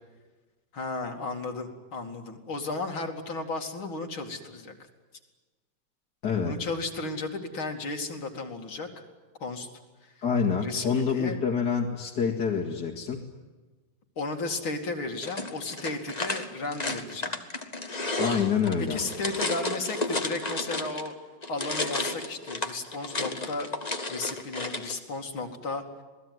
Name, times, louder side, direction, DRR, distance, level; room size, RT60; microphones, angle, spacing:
voice 1, 0.7-4.7 6.4-9.0 9.4-9.7 10.0-10.1 10.6-11.4 14.2-17.4 18.9-21.1 21.5-23.7 24.1-25.8, left 3 dB, 75° left, 4 dB, 3.4 m, -34 dB
voice 2, 6.2-6.5 10.2-13.2 18.2-19.0, left 6 dB, 55° left, -1 dB, 2.6 m, -27 dB
sound 1, 15.2-21.1 21.4-24.9, left 2 dB, 20° left, 1.6 m, -32 dB
27.5 x 19.0 x 9.6 m, 1.3 s
omnidirectional pair, 2.3 m